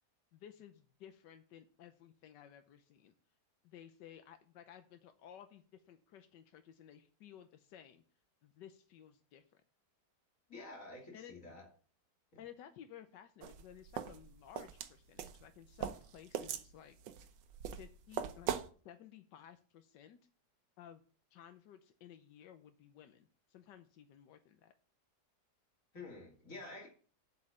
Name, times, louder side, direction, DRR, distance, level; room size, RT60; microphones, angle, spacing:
voice 1, 0.3-3.1 3.6-8.0 8.4-9.6 11.1-11.3 12.4-17.0 17.8-18.5 18.8-20.2 20.8-21.0 21.3-24.7, left 10 dB, 90° left, 8 dB, 1.4 m, -56 dB
voice 2, 10.5-11.7 12.3-12.4 25.9-26.9, left 2 dB, 50° left, -1 dB, 3.3 m, -49 dB
sound 1, 13.4-18.7, right 9 dB, 90° right, 1.4 m, -41 dB
7.8 x 5.4 x 7.3 m, 0.41 s
omnidirectional pair, 1.8 m